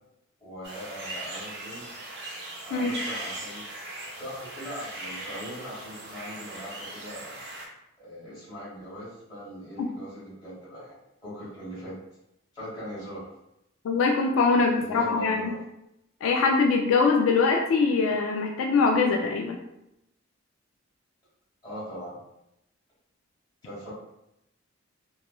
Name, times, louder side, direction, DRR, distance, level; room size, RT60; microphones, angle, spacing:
voice 1, 0.4-1.9 2.6-3.6 4.1-7.4 8.0-11.0 11.2-11.9 12.5-13.3 14.7-15.6 21.6-22.2 23.6-23.9, equal, 20° left, -9 dB, 1.4 m, -40 dB
sound 1, 0.6-7.7, right 1 dB, 55° right, 0.7 m, -39 dB
voice 2, 13.8-15.5 16.2-19.6, left 4 dB, 85° left, 1 dB, 0.3 m, -23 dB
3.0 x 2.2 x 2.2 m, 0.86 s
head